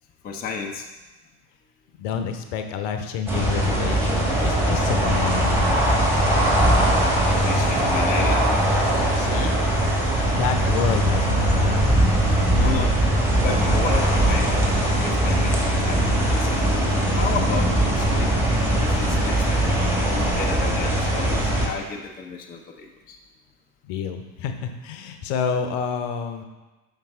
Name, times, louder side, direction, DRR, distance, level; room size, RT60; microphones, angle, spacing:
voice 1, 0.2-0.9 7.4-8.5 12.6-13.0 13.4-14.5 15.0-16.5 17.1-18.3 18.7-19.6 20.1-23.2, left 5 dB, 20° left, 2 dB, 0.6 m, -32 dB
voice 2, 2.0-5.6 6.8-7.0 9.1-9.6 10.3-11.8 23.8-26.4, left 7 dB, 55° left, 7 dB, 0.8 m, -28 dB
sound 1, 3.3-21.7, right 1 dB, 5° right, 1.7 m, -20 dB
5.8 x 5.4 x 3.6 m, 1.1 s
figure-of-eight pair, 65°, 46 cm